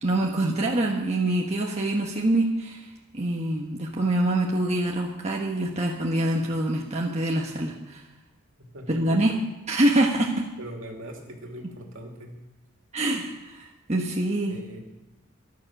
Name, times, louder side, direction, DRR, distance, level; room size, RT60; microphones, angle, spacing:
voice 1, 0.0-2.9 3.1-8.0 8.9-9.3 9.7-10.4 12.9-14.5, right 1 dB, 30° right, -1 dB, 1.2 m, -25 dB
voice 2, 8.7-9.2 10.6-12.3 14.5-14.8, right 1 dB, 65° right, 1 dB, 2.8 m, -40 dB
14.0 x 11.5 x 6.1 m, 1.0 s
head